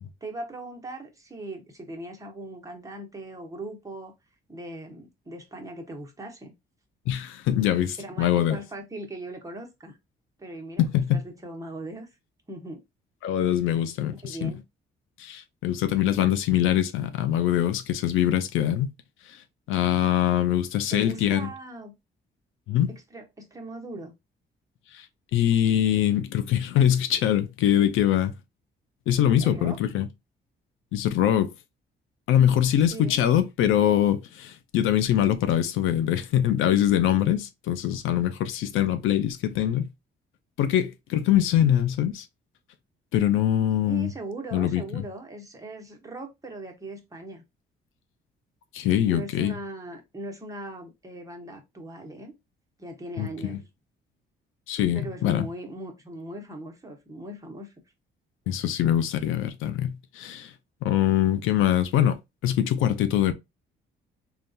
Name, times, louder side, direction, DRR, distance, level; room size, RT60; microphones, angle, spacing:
voice 1, 0.2-4.1 4.5-6.5 8.0-10.0 10.4-10.9 11.1-12.1 12.5-12.8 14.1-14.6 20.9-21.9 22.9-24.1 29.4-29.8 32.7-33.2 43.8-47.4 49.0-52.3 52.8-53.6 54.9-57.7, right 2 dB, 15° right, 1.0 m, -39 dB
voice 2, 7.1-8.6 10.8-11.2 13.2-14.5 15.2-18.9 19.7-21.5 22.7-22.9 24.9-25.0 25.3-28.3 29.1-30.1 30.9-31.5 32.3-39.9 40.6-42.3 43.1-44.1 44.5-45.1 48.7-49.6 53.2-53.6 54.7-55.5 58.5-60.5 60.8-63.3, left 11 dB, 85° left, 0.5 m, -23 dB
3.7 x 2.4 x 2.6 m
cardioid pair, 90°, 20 cm